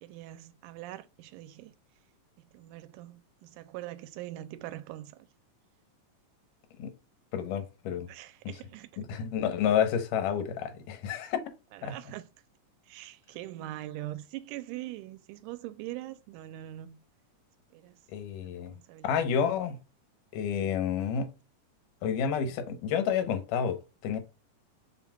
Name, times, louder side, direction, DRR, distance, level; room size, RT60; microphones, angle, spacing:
voice 1, 0.0-1.7 2.5-5.3 7.9-8.9 11.7-12.3 12.9-17.0 17.7-18.0 18.4-19.5 20.6-20.8 22.4-22.8, right 15 dB, 85° right, 2.0 m, -43 dB
voice 2, 7.3-8.1 8.5-8.6 9.1-11.4 11.8-12.0 18.1-18.7 19.0-19.8 20.3-21.3 22.0-23.8 24.0-24.2, left 8 dB, 85° left, 2.4 m, -29 dB
5.9 x 4.0 x 2.2 m
omnidirectional pair, 3.7 m